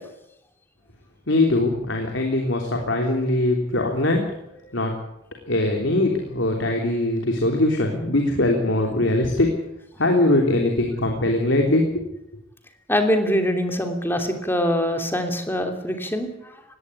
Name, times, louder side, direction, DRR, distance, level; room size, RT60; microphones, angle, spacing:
voice 1, 1.3-4.2 4.7-4.9 5.5-9.5 10.0-12.0, left 1 dB, 85° left, 2 dB, 3.4 m, -21 dB
voice 2, 12.9-16.3, equal, 10° left, 4 dB, 3.1 m, -23 dB
20.0 x 17.0 x 9.8 m, 0.85 s
head